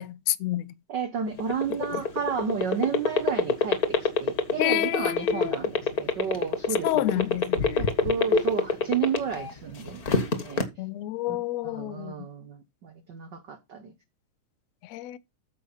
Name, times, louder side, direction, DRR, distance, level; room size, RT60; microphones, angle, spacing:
voice 1, 0.0-0.7 1.9-2.0 4.6-5.5 6.8-7.9 10.8-12.3 14.8-15.2, left 15 dB, 70° left, 1.7 m, -29 dB
voice 2, 0.9-7.2 7.8-10.0 10.4-10.6 11.3-11.4 11.6-13.9, right 7 dB, 80° right, 0.9 m, -32 dB
sound 1, 1.3-9.5 9.9-10.6, left 5 dB, 40° left, 1.4 m, -23 dB
14.0 x 5.4 x 5.6 m
omnidirectional pair, 3.5 m